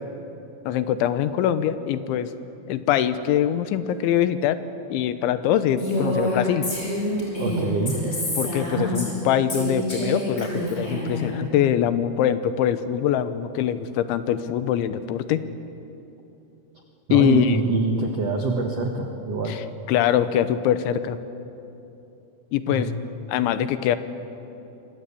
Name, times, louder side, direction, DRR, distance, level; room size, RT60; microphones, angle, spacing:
voice 1, 0.7-2.3 2.7-4.6 4.9-6.7 8.4-15.4 17.1-17.6 19.5-21.2 22.5-22.9 23.3-24.0, left 10 dB, 80° left, 12 dB, 3.3 m, -23 dB
Female speech woman speaking, 5.8-9.2 9.5-11.3, equal, 15° left, 7.3 m, -27 dB
voice 2, 7.4-8.0 17.1-19.6 22.7-22.9, right 3 dB, 80° right, 3 dB, 1.4 m, -25 dB
28.0 x 24.0 x 8.5 m, 2.9 s
omnidirectional pair, 5.4 m